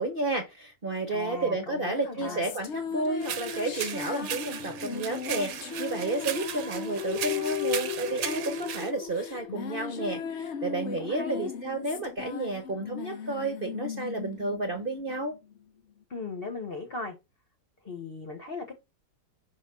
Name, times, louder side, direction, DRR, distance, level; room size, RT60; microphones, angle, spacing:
voice 1, 0.0-5.5 5.8-15.3, right 2 dB, 40° right, 1.0 m, -31 dB
voice 2, 1.1-2.4 11.0-11.5 16.1-17.1 17.8-18.7, left 4 dB, 35° left, 1.2 m, -37 dB
sound 1, 1.9-15.6, left 7 dB, 55° left, 0.8 m, -37 dB
sound 2, 3.2-8.9, right 9 dB, 60° right, 1.1 m, -36 dB
5.7 x 3.6 x 5.5 m
omnidirectional pair, 1.8 m